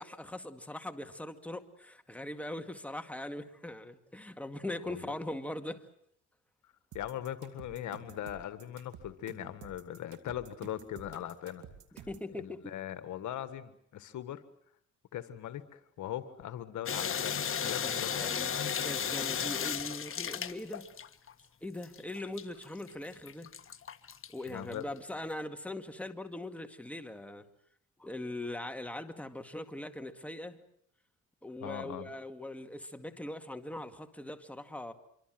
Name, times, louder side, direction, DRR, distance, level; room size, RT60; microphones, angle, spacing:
voice 1, 0.0-5.8 11.9-12.8 17.6-20.9 21.6-23.5 24.3-27.5 28.0-30.6 31.4-34.9, left 1 dB, 5° left, 7 dB, 2.1 m, -41 dB
voice 2, 6.9-11.6 12.4-14.4 15.1-18.6 24.5-24.9 31.6-32.1, left 11 dB, 75° left, 12 dB, 1.8 m, -40 dB
sound 1, 6.9-12.3, right 8 dB, 75° right, 2.6 m, -51 dB
sound 2, 16.9-21.3 21.8-24.8, left 7 dB, 45° left, 1.6 m, -34 dB
26.0 x 24.0 x 7.8 m, 0.69 s
cardioid pair, 90°, 30 cm